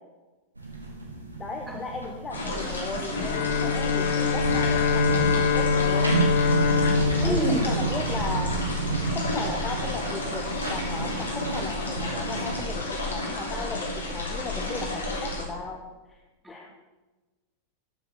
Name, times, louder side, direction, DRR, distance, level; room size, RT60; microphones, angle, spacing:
sound 1, 0.6-12.6, right 4 dB, 80° right, 2.0 m, -31 dB
voice 1, 1.4-6.4 7.2-8.6 9.1-15.8 16.1-16.2 16.5-16.7, left 4 dB, 15° left, 1 dB, 1.1 m, -36 dB
sound 2, 2.3-15.4, left 2 dB, 75° left, 3.1 m, -31 dB
Bowed string instrument, 3.1-8.6, left 6 dB, 50° left, 0.7 m, -25 dB
voice 2, 7.2-7.7 16.4-16.7, right 1 dB, 10° right, 2 dB, 2.0 m, -29 dB
12.0 x 7.0 x 5.8 m, 1.2 s
figure-of-eight pair, 90°, 0 cm